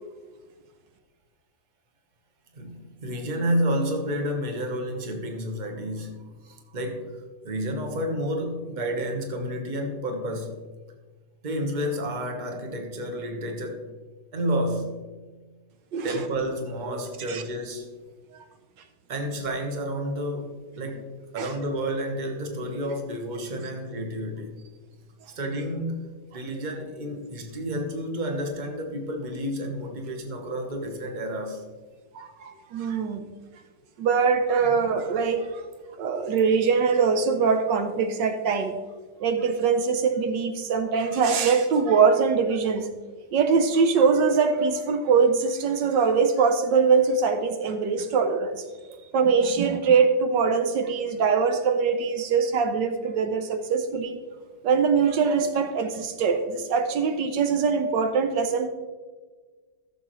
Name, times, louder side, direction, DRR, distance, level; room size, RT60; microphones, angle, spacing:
voice 1, 2.5-7.2 7.4-10.5 11.4-13.9 14.3-15.0 16.0-17.9 19.1-24.6 25.3-31.6, equal, 30° right, 1.2 m, -30 dB
voice 2, 15.9-16.3 17.3-17.4 21.4-21.5 32.1-33.3 34.0-35.6 36.0-38.7 39.2-42.9 43.3-48.6 49.1-54.2 54.6-58.7, right 5 dB, 80° right, 1.4 m, -22 dB
14.0 x 7.3 x 3.1 m
omnidirectional pair, 2.0 m